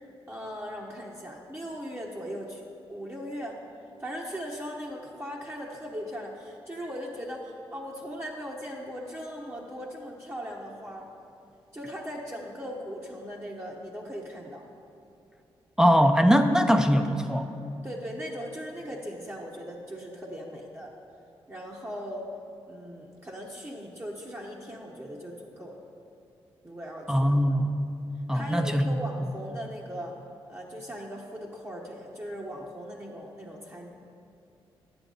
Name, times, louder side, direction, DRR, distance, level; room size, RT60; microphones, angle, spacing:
voice 1, 0.3-2.6 2.9-3.6 4.0-11.1 11.7-14.6 17.8-20.9 21.5-22.3 22.7-25.8 26.6-27.4 28.3-30.1 30.5-33.9, equal, 25° right, -3 dB, 1.2 m, -39 dB
voice 2, 15.8-17.5 27.1-27.7 28.3-29.0, equal, 5° right, 7 dB, 0.7 m, -21 dB
10.0 x 8.0 x 4.0 m, 2.7 s
cardioid pair, 55°, 10 cm